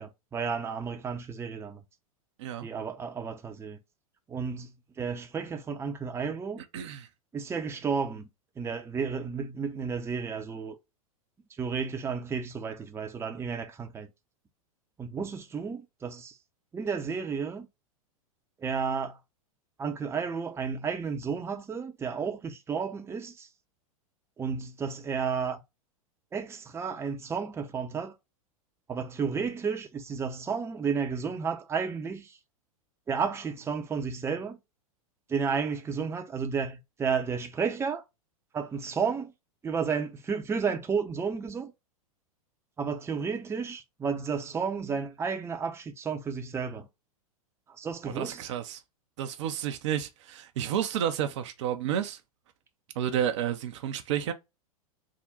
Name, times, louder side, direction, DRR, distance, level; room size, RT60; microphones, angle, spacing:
voice 1, 0.0-1.8 2.6-3.8 4.3-4.7 5.0-6.6 7.3-8.3 8.6-10.8 11.6-14.1 15.0-16.3 16.7-17.7 18.6-19.2 19.8-23.5 24.4-25.6 26.3-28.1 28.9-32.4 33.1-34.6 35.3-38.0 38.5-39.3 39.6-41.7 42.8-46.9 47.8-48.5, right 5 dB, 15° right, 0.6 m, -32 dB
voice 2, 6.6-7.1 48.0-48.8 49.2-52.2 53.0-54.3, right 10 dB, 55° right, 0.6 m, -31 dB
3.7 x 2.1 x 3.9 m
figure-of-eight pair, 95°, 19 cm